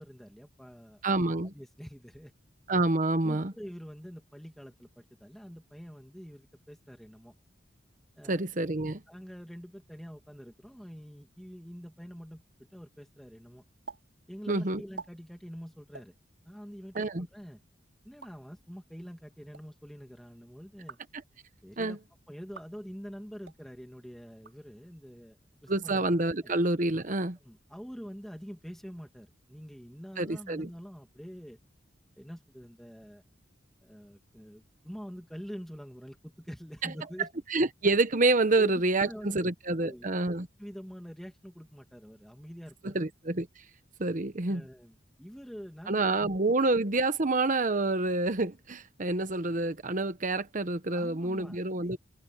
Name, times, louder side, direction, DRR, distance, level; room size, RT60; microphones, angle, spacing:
voice 1, 0.0-1.0 1.5-2.3 3.2-7.3 8.2-8.4 9.1-13.6 14.3-16.1 16.5-17.6 18.0-21.0 21.6-22.0 22.3-25.4 25.6-26.1 26.4-26.5 27.4-31.6 32.2-33.2 33.8-37.4 38.6-39.4 39.8-40.1 40.6-43.0 44.5-46.0 50.9-51.9, equal, ahead, 2.3 m, -45 dB
voice 2, 1.0-1.5 2.7-3.5 8.3-9.0 14.5-14.8 16.9-17.3 21.8-22.0 25.7-27.4 30.2-30.7 36.8-36.9 37.5-40.5 42.8-43.6 44.0-44.6 45.9-52.0, right 2 dB, 45° right, 1.1 m, -28 dB
sound 1, 13.9-14.0 14.3-14.4 14.8-15.1 15.9-16.1 16.8-17.1 18.0-18.3 19.3-19.6 20.7-21.1 21.6-22.0 22.5-22.7 23.4-23.6 24.3-25.0, right 4 dB, 85° right, 5.4 m, -47 dB
head